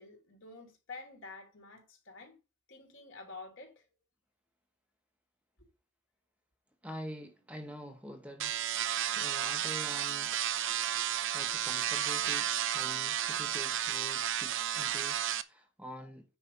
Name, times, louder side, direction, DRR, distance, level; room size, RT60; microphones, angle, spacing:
voice 1, 0.0-2.4 2.7-3.8 5.6-5.7, left 3 dB, 60° left, 3.1 m, -49 dB
voice 2, 6.8-8.5 9.0-10.5 11.1-16.2, equal, 5° right, 1.0 m, -46 dB
sound 1, 8.4-15.4, right 11 dB, 55° right, 0.6 m, -32 dB
9.6 x 4.9 x 5.3 m
head